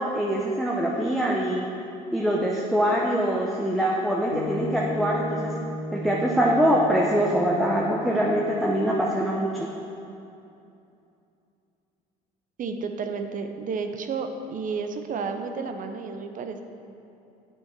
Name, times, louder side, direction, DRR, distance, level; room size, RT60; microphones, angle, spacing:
voice 1, 0.0-1.6 2.1-5.5 5.9-9.7, equal, ahead, -2 dB, 0.9 m, -24 dB
sound 1, 4.3-8.7, left 1 dB, 85° left, 1.0 m, -35 dB
voice 2, 12.6-16.6, right 5 dB, 45° right, 7 dB, 0.7 m, -31 dB
8.6 x 6.3 x 4.5 m, 2.7 s
hypercardioid pair, 70°, 19 cm